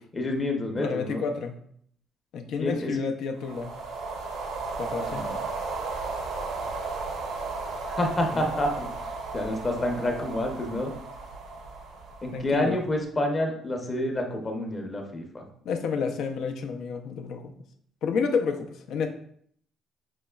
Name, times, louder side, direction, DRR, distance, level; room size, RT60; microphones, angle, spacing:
voice 1, 0.1-1.2 2.6-2.9 5.1-5.3 7.9-8.9 9.3-10.9 12.2-15.4, left 1 dB, 25° left, 3 dB, 0.8 m, -28 dB
voice 2, 0.8-1.6 2.3-3.7 4.8-5.2 8.3-8.5 12.3-12.8 15.6-17.5 18.0-19.1, left 5 dB, 70° left, 5 dB, 0.5 m, -30 dB
sound 1, 3.4-12.8, right 3 dB, 85° right, 0.8 m, -35 dB
5.3 x 3.1 x 2.3 m, 0.64 s
cardioid pair, 115°, 0 cm